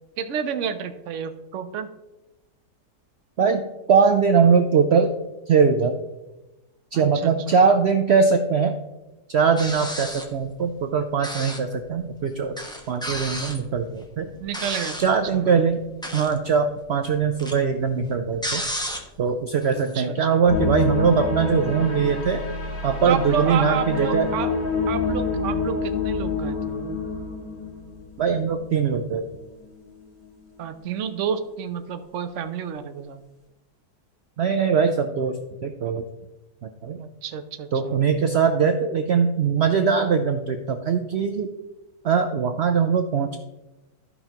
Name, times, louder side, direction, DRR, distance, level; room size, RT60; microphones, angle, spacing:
voice 1, 0.2-1.9 6.9-7.5 14.4-15.6 19.7-20.2 23.0-24.5 24.9-27.0 30.6-33.2 37.0-38.0, right 7 dB, 60° right, 9 dB, 0.9 m, -30 dB
voice 2, 3.9-5.1 5.5-6.0 6.9-8.7 9.3-12.6 12.9-14.3 15.0-15.8 16.1-18.6 19.2-22.4 22.8-24.3 28.2-29.2 34.4-35.4 35.6-36.0 36.6-37.0 37.7-41.5 42.0-43.4, right 6 dB, 75° right, 6 dB, 0.6 m, -21 dB
sound 1, 9.6-10.4 11.2-11.7 12.0-12.1 12.6-15.1 15.8-16.5 16.8-19.3 19.6-20.0, equal, 5° left, 0.7 m, -32 dB
sound 2, 20.5-28.7 29.0-29.3 29.8-29.9, left 4 dB, 60° left, 2.9 m, -27 dB
14.0 x 5.5 x 2.9 m, 1.0 s
omnidirectional pair, 1.7 m